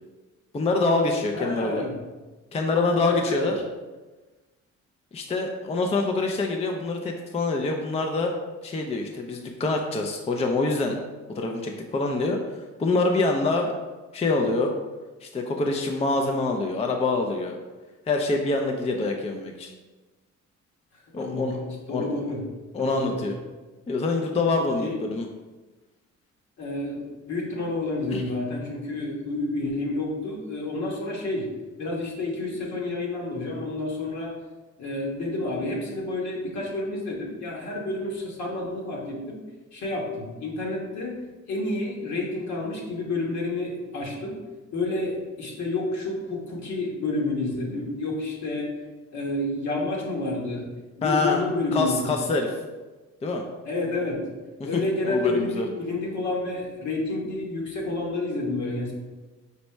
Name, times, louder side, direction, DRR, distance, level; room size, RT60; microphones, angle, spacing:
voice 1, 0.5-1.9 2.5-3.6 5.1-8.3 8.6-11.0 11.3-13.7 14.1-14.7 15.2-17.6 18.1-19.7 21.1-21.6 21.9-22.2 22.7-23.3 23.9-25.3 28.1-28.3 51.0-51.4 51.7-52.5 53.2-53.4 54.6-55.7, left 3 dB, 20° left, 2 dB, 0.4 m, -25 dB
voice 2, 1.3-1.9 3.0-3.5 21.1-21.6 21.9-22.5 22.8-23.2 24.8-25.0 26.6-31.5 31.8-34.3 34.8-39.4 39.7-41.2 41.5-44.4 44.7-48.7 49.1-50.7 50.9-52.1 53.6-54.3 54.6-58.9, left 2 dB, 65° left, -2 dB, 1.3 m, -29 dB
5.3 x 2.0 x 4.4 m, 1.2 s
cardioid pair, 90°, 30 cm